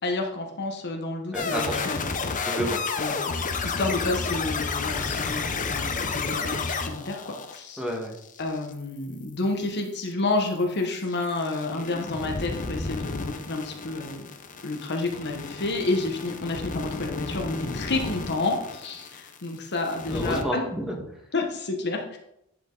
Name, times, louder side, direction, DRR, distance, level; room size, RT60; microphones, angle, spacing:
voice 1, 0.0-2.0 3.0-3.2 3.6-7.8 8.4-14.3 14.6-20.6 21.3-22.2, left 2 dB, 55° left, 3 dB, 1.1 m, -30 dB
sound 1, 1.3-8.7 11.1-19.5 19.7-20.4, left 4 dB, 40° left, 0.7 m, -32 dB
voice 2, 1.3-1.8 2.4-2.8 7.8-8.1 20.1-21.0, equal, 5° right, -1 dB, 1.5 m, -30 dB
10.5 x 5.1 x 3.9 m, 0.79 s
head